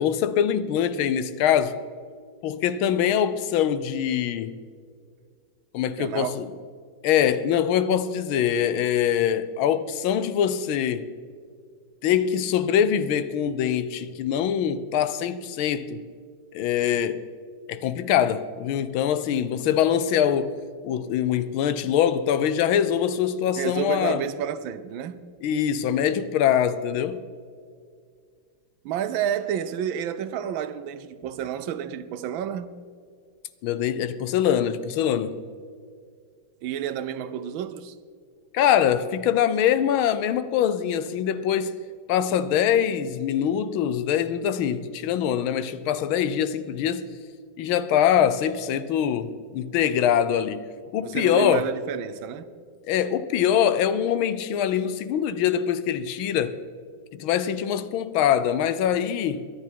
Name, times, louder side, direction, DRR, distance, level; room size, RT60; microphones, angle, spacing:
voice 1, 0.0-1.8 2.4-4.6 5.7-6.5 7.0-11.1 12.0-16.0 16.5-17.2 17.7-20.5 20.8-24.2 25.4-27.2 33.6-35.4 38.5-41.8 42.1-47.1 47.6-50.7 50.9-51.6 52.9-56.6 57.1-59.5, left 9 dB, 85° left, 1.6 m, -23 dB
voice 2, 6.0-6.4 23.6-25.3 28.8-32.8 36.6-37.9 51.0-52.5, right 9 dB, 80° right, 1.5 m, -30 dB
23.0 x 9.7 x 4.5 m
omnidirectional pair, 2.2 m